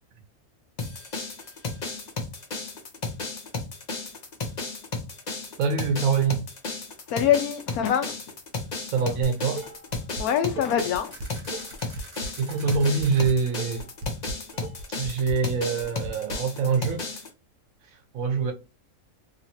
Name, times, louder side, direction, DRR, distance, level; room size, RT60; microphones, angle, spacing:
sound 1, 0.8-17.3, left 3 dB, 45° left, 0.6 m, -34 dB
voice 1, 5.6-6.4 8.9-9.6 12.4-13.9 15.0-17.0 18.1-18.5, right 5 dB, 75° right, 1.1 m, -24 dB
voice 2, 7.1-8.1 10.2-11.1, left 9 dB, 90° left, 1.2 m, -24 dB
Dishes pots and pans, 9.2-10.2 10.6-16.4, right 2 dB, 90° right, 1.2 m, -37 dB
sound 2, 11.1-13.3, right 2 dB, 20° right, 1.0 m, -46 dB
3.0 x 2.8 x 2.8 m
omnidirectional pair, 1.5 m